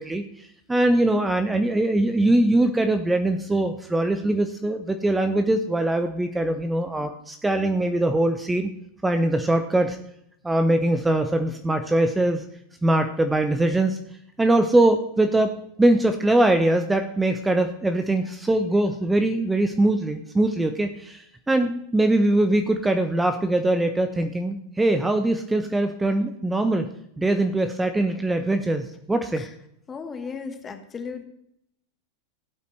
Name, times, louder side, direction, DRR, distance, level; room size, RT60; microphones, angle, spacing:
voice 1, 0.0-8.7 9.0-10.0 10.4-12.4 12.8-14.0 14.4-26.9 27.2-29.5, right 1 dB, 10° right, 7 dB, 0.8 m, -22 dB
voice 2, 29.9-31.2, left 5 dB, 20° left, 7 dB, 1.5 m, -35 dB
16.5 x 8.3 x 3.3 m, 0.75 s
figure-of-eight pair, 90°, 0 cm